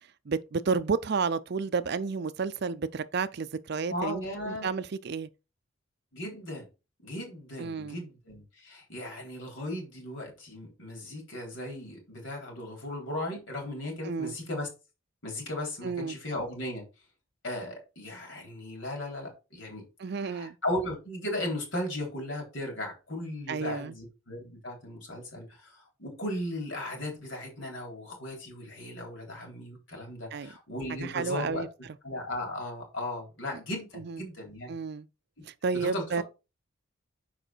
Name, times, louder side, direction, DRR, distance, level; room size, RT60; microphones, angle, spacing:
voice 1, 0.3-4.2 4.5-5.3 7.6-8.0 14.0-14.4 15.8-16.2 20.0-20.6 23.5-23.9 30.3-30.5 31.0-31.7 34.0-34.2 34.7-35.1 35.5-36.2, right 5 dB, 50° right, 0.4 m, -31 dB
voice 2, 3.9-4.7 6.1-6.7 7.0-14.7 15.2-16.8 17.4-31.7 32.0-34.7 35.8-36.0, left 1 dB, 65° left, 3.6 m, -36 dB
6.7 x 5.0 x 4.4 m
head